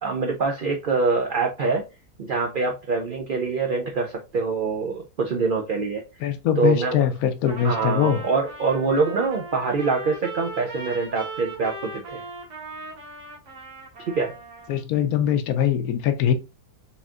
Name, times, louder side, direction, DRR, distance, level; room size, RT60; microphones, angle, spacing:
voice 1, 0.0-1.8 2.2-6.0 6.6-7.1 7.6-12.2 14.0-14.3, right 4 dB, 65° right, 0.5 m, -24 dB
voice 2, 6.2-8.2 14.7-16.3, left 9 dB, 70° left, 1.1 m, -22 dB
Trumpet, 7.5-14.8, right 2 dB, 80° right, 1.9 m, -38 dB
4.2 x 3.6 x 2.4 m
omnidirectional pair, 1.7 m